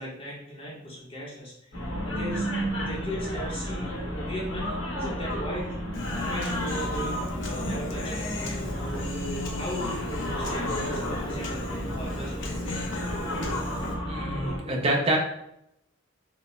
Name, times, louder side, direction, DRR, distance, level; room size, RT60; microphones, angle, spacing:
voice 1, 0.0-1.7 2.0-5.8 6.2-9.0 9.5-12.7, equal, 25° left, -5 dB, 0.8 m, -37 dB
sound 1, 1.7-14.6, equal, 80° left, 1.2 m, -32 dB
Human voice, 5.9-13.9, left 2 dB, 65° left, 0.6 m, -36 dB
voice 2, 14.1-15.2, right 1 dB, 30° right, -1 dB, 0.6 m, -26 dB
4.4 x 2.1 x 3.1 m, 0.79 s
head